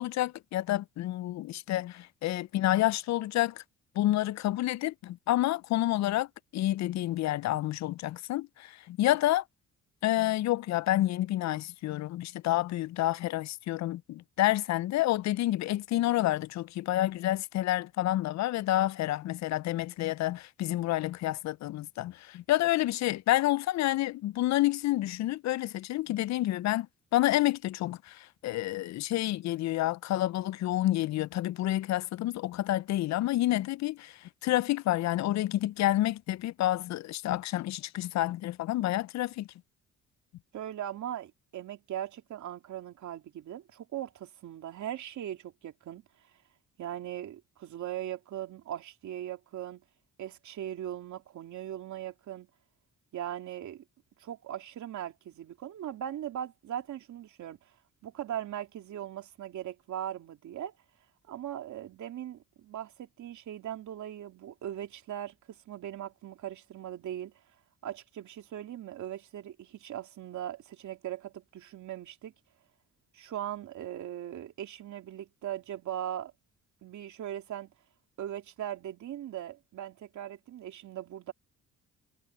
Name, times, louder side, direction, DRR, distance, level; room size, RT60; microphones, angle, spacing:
voice 1, 0.0-3.6 4.0-6.3 6.5-9.4 10.0-26.9 27.1-39.5, left 15 dB, 65° left, 0.5 m, -29 dB
voice 2, 40.5-46.0 46.8-49.8 50.2-52.5 53.1-53.8 54.2-57.6 58.0-60.7 61.3-65.3 65.7-67.3 67.8-72.3 73.1-76.3 76.8-77.7 78.2-81.3, right 11 dB, 70° right, 3.2 m, -39 dB
cardioid pair, 90°, 30 cm